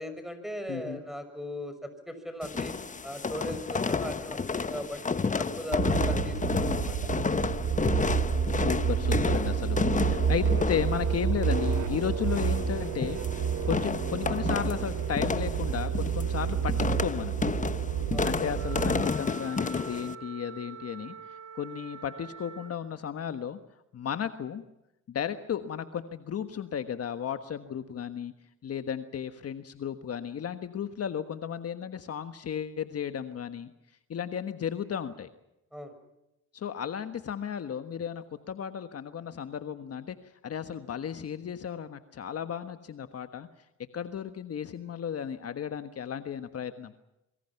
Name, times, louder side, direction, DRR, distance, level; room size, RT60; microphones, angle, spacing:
voice 1, 0.0-2.7 3.0-7.0 18.1-18.4 35.7-35.9, equal, ahead, 9 dB, 6.1 m, -38 dB
voice 2, 0.7-1.0 8.5-17.4 18.2-23.6 23.9-24.7 25.1-28.3 28.6-33.7 34.1-35.3 36.5-40.2 40.4-43.5 43.9-46.9, left 8 dB, 50° left, 9 dB, 1.4 m, -34 dB
sound 1, 2.4-20.1, left 4 dB, 25° left, 1.1 m, -31 dB
sound 2, 5.7-19.1, right 7 dB, 80° right, 3.5 m, -29 dB
Wind instrument woodwind instrument, 18.5-22.8, right 7 dB, 60° right, 2.0 m, -45 dB
26.5 x 24.0 x 5.9 m, 0.89 s
cardioid pair, 90°, 30 cm